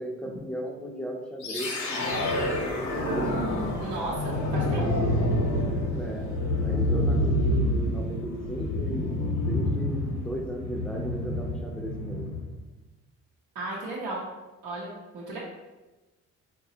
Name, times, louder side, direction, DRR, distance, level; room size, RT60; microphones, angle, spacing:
voice 1, 0.0-3.3 5.9-6.4 6.6-9.1 9.5-12.3, right 1 dB, 5° left, 1 dB, 0.5 m, -36 dB
sound 1, 1.4-12.5, left 1 dB, 75° left, 0.8 m, -28 dB
voice 2, 3.8-4.9 13.5-14.2 14.6-15.4, right 2 dB, 80° right, -6 dB, 0.7 m, -35 dB
3.9 x 2.3 x 2.7 m, 1.1 s
cardioid pair, 90°, 30 cm